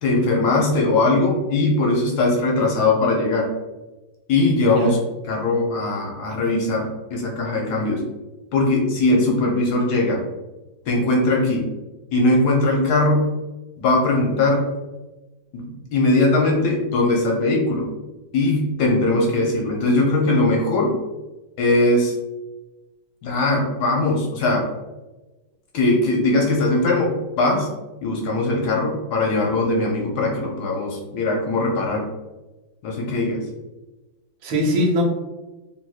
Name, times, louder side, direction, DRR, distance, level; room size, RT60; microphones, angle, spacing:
voice 1, 0.0-3.5 4.3-5.0 5.3-8.0 8.5-10.2 10.8-11.7 12.1-13.3 13.8-14.7 15.5-17.9 18.3-21.0 21.6-22.1 23.2-24.7 25.7-27.7 28.0-32.1 32.8-33.5, left 2 dB, 65° left, -1 dB, 1.0 m, -20 dB
voice 2, 4.6-5.0 34.4-35.0, equal, 85° right, 0 dB, 1.5 m, -21 dB
3.4 x 2.9 x 2.3 m, 1.1 s
omnidirectional pair, 2.1 m